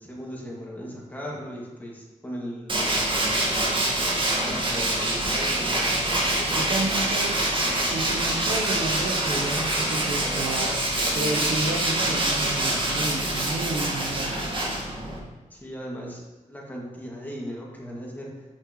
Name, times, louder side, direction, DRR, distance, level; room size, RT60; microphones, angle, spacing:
voice 1, 0.0-3.6 4.5-5.8 6.4-6.9 15.5-18.4, equal, 15° left, -3 dB, 2.2 m, -38 dB
Tools, 2.7-15.2, right 1 dB, 40° right, 1.8 m, -25 dB
voice 2, 6.5-7.4 7.9-10.7 11.1-14.4, right 2 dB, 75° right, 2 dB, 1.0 m, -31 dB
8.5 x 6.5 x 3.2 m, 1.2 s
cardioid pair, 70°, 14 cm